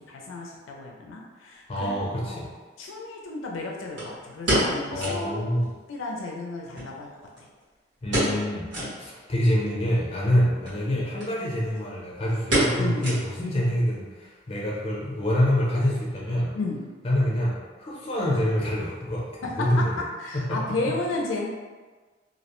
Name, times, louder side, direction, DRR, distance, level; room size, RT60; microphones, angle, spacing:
voice 1, 0.0-2.0 2.3-2.4 2.8-5.5 5.9-7.1 10.4-10.5 10.8-11.0 12.8-13.1 16.5-16.8 19.4-21.5, left 2 dB, 85° left, -1 dB, 0.4 m, -33 dB
voice 2, 1.7-2.5 4.9-5.6 8.0-8.7 9.0-16.5 17.0-19.3 19.5-19.9 20.3-20.9, equal, 30° left, -4 dB, 0.6 m, -26 dB
sound 1, 1.9-2.0 4.0-5.3 5.6-5.7 6.0-6.1 6.7-7.6 8.1-8.4 8.7-9.0 9.5-9.6 10.5-10.8 11.2-11.3 11.6-12.0 12.5-13.6 13.9-14.0 14.5-14.9 15.2-15.3, right 1 dB, 65° right, 1.1 m, -27 dB
2.5 x 2.0 x 2.9 m, 1.4 s
head